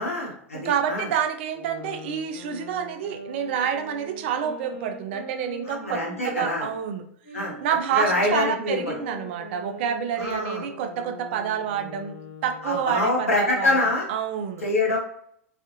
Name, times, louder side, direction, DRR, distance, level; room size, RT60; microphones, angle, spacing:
voice 1, 0.0-1.1 5.6-6.7 7.3-7.6 7.9-8.8 10.2-10.6 12.6-14.1 14.6-15.0, left 2 dB, 80° left, -3 dB, 1.0 m, -25 dB
voice 2, 0.5-7.0 7.6-12.1 12.4-13.7 14.1-14.7, right 8 dB, 50° right, 6 dB, 0.4 m, -28 dB
sound 1, 1.5-6.8 7.2-12.9, equal, 60° left, 1.1 m, -42 dB
2.5 x 2.4 x 2.6 m, 0.67 s
figure-of-eight pair, 90°, 7 cm